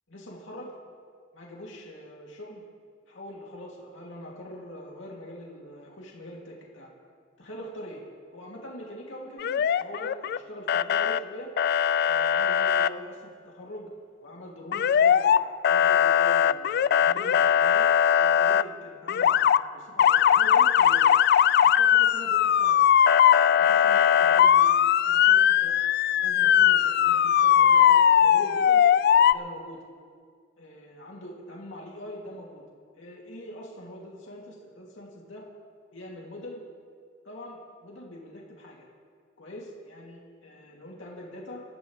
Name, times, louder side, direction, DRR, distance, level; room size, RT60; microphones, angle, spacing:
voice 1, 0.1-0.8 1.3-2.6 3.1-6.9 7.4-8.0 8.3-11.5 12.0-13.9 14.2-17.9 18.2-21.1 21.6-22.9 23.6-24.7 25.0-25.7 26.2-28.8 29.3-29.8 30.6-32.6 32.9-35.5 35.9-36.6 37.2-38.8 39.4-41.6, equal, 75° left, -3 dB, 2.7 m, -43 dB
Motor vehicle (road) / Siren, 9.4-10.4 10.7-11.2 11.6-12.9 14.7-15.4 15.6-18.6 19.1-19.6 20.0-29.3, left 9 dB, 55° left, 0.3 m, -20 dB
25.0 x 14.0 x 3.3 m, 2.1 s
head